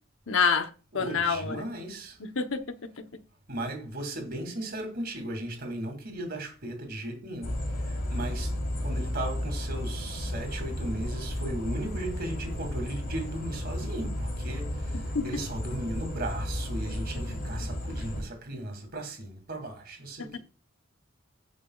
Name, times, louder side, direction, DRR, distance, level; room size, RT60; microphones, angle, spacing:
voice 1, 0.3-1.6 2.2-3.2 15.1-15.3 20.2-20.4, left 5 dB, 65° left, 0.9 m, -28 dB
voice 2, 0.9-2.2 3.5-8.5 8.8-20.4, right 1 dB, 50° right, 2.6 m, -37 dB
sound 1, 7.4-18.2, left 1 dB, 50° left, 3.5 m, -33 dB
16.5 x 6.2 x 2.4 m
head